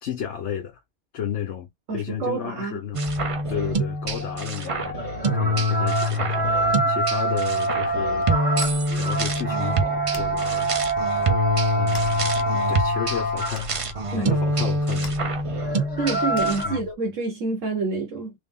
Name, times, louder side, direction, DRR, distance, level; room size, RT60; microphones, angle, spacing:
voice 1, 0.0-0.8 1.1-3.0 3.5-5.1 5.3-6.5 6.9-8.3 8.9-10.7 11.8-13.7 14.1-15.4 16.6-16.9, left 9 dB, 70° left, 1.0 m, -32 dB
voice 2, 1.9-2.8 14.1-14.3 16.0-18.3, right 4 dB, 90° right, 1.4 m, -27 dB
sound 1, 2.9-16.6, equal, 40° right, 0.5 m, -26 dB
sound 2, 3.1-14.0 15.5-16.8, right 2 dB, 10° left, 0.8 m, -27 dB
sound 3, 8.3-16.9, left 1 dB, 40° left, 0.3 m, -42 dB
3.5 x 2.4 x 3.6 m
omnidirectional pair, 1.3 m